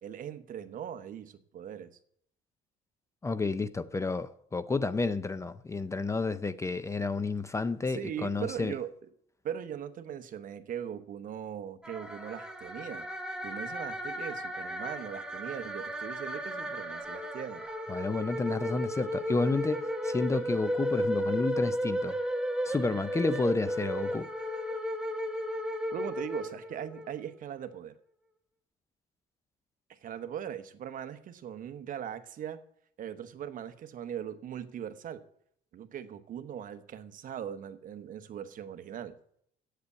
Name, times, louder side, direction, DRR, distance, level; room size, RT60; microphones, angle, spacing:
voice 1, 0.0-1.9 7.9-8.9 9.4-13.1 13.4-17.6 25.9-27.9 30.0-32.6 33.0-35.2 35.7-39.2, right 9 dB, 55° right, 0.9 m, -40 dB
voice 2, 3.2-8.7 17.9-22.2 22.6-24.3, left 3 dB, 15° left, 0.5 m, -30 dB
sound 1, 11.8-27.1, equal, 5° right, 1.2 m, -34 dB
8.3 x 8.0 x 8.1 m
cardioid pair, 110°, 17 cm